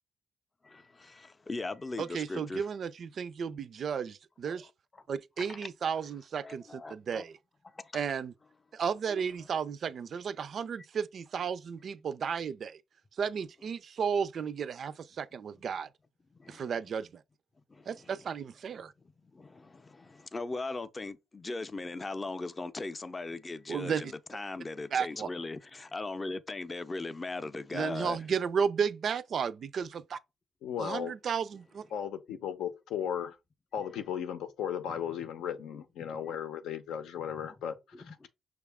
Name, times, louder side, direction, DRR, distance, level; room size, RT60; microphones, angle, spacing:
voice 1, 0.6-2.7 4.4-4.7 5.4-5.6 6.4-7.2 7.6-8.0 9.1-9.2 16.3-16.6 17.7-18.1 19.2-28.3 34.9-35.3 36.0-36.4 37.9-38.3, left 3 dB, 25° left, 0.5 m, -39 dB
voice 2, 2.0-4.7 5.1-7.3 7.9-8.3 8.7-12.8 13.2-15.9 16.5-17.2 17.9-18.9 23.7-24.0 24.9-25.3 27.7-30.2 30.8-31.8, right 6 dB, 55° right, 0.4 m, -33 dB
voice 3, 30.6-31.1 31.9-33.4 33.7-38.3, left 8 dB, 85° left, 0.7 m, -36 dB
5.9 x 2.3 x 3.5 m
cardioid pair, 90°, 0 cm